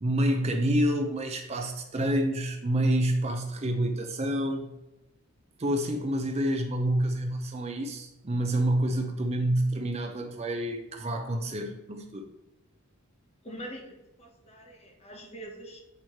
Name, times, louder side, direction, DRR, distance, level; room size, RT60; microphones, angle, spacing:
voice 1, 0.0-4.7 5.6-12.3, right 1 dB, 30° right, 4 dB, 0.5 m, -28 dB
voice 2, 13.4-15.8, right 1 dB, 30° left, 2 dB, 1.1 m, -44 dB
8.1 x 3.1 x 4.4 m, 0.97 s
head